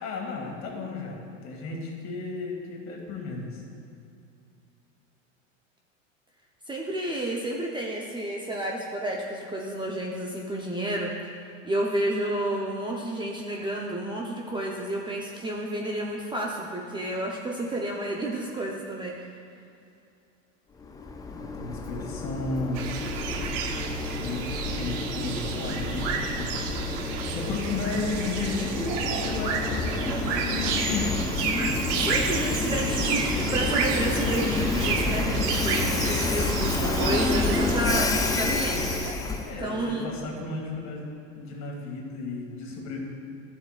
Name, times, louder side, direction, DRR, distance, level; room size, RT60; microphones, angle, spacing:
voice 1, 0.0-3.6 21.3-22.9 24.2-26.6 27.3-31.1 39.4-41.1 41.4-43.0, left 3 dB, 45° left, 0 dB, 1.9 m, -34 dB
voice 2, 6.7-11.1 11.6-19.1 32.0-33.2 33.5-38.1 38.4-39.1 39.6-40.1, right 1 dB, 10° right, -2 dB, 0.7 m, -30 dB
Train, 20.8-39.6, left 3 dB, 10° left, 0.3 m, -29 dB
sound 1, 22.7-39.1, right 5 dB, 60° right, 0.9 m, -31 dB
12.5 x 7.4 x 2.4 m, 2.6 s
hypercardioid pair, 105°, 38 cm